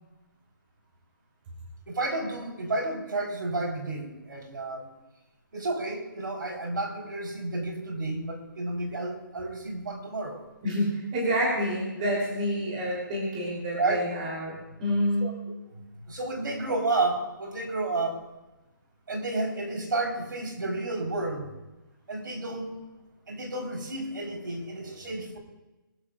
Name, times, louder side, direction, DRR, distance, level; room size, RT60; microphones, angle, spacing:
voice 1, 1.9-4.9 5.5-10.4 13.7-14.0 15.2-15.3 16.1-18.2 19.1-21.5 22.1-22.8 23.3-25.4, right 2 dB, 70° right, 1 dB, 4.3 m, -31 dB
voice 2, 10.6-15.3, equal, 20° right, -3 dB, 3.4 m, -28 dB
23.0 x 13.5 x 2.5 m, 1.1 s
hypercardioid pair, 175°, 11 cm